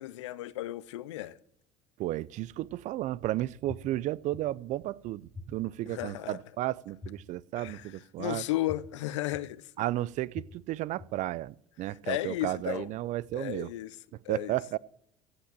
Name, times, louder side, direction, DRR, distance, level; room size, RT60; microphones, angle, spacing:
voice 1, 0.0-1.4 5.9-6.4 7.6-7.9 8.2-9.7 12.1-12.9 13.3-14.0 14.2-14.6, left 15 dB, 90° left, 0.6 m, -34 dB
voice 2, 2.0-8.4 9.8-13.7 14.3-14.8, right 15 dB, 55° right, 0.5 m, -33 dB
sound 1, 3.7-3.8 4.3-4.4 5.3-5.4 6.0-6.1 7.0-7.1 7.7-7.8 8.7-8.8 9.3-9.4 10.3-10.4 11.0-11.1, left 5 dB, 20° left, 1.3 m, -41 dB
15.5 x 5.9 x 7.5 m
hypercardioid pair, 85°, 15 cm